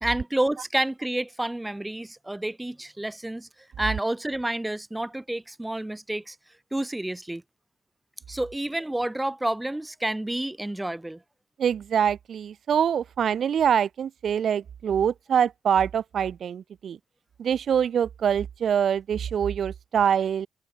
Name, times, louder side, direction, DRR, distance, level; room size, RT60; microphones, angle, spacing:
voice 1, 0.0-3.5 3.8-6.4 6.7-7.4 8.3-11.2, right 1 dB, 10° right, 2.5 m, -29 dB
voice 2, 11.6-17.0 17.4-20.5, right 8 dB, 55° right, 1.7 m, -24 dB
open air
cardioid pair, 90°, 0 cm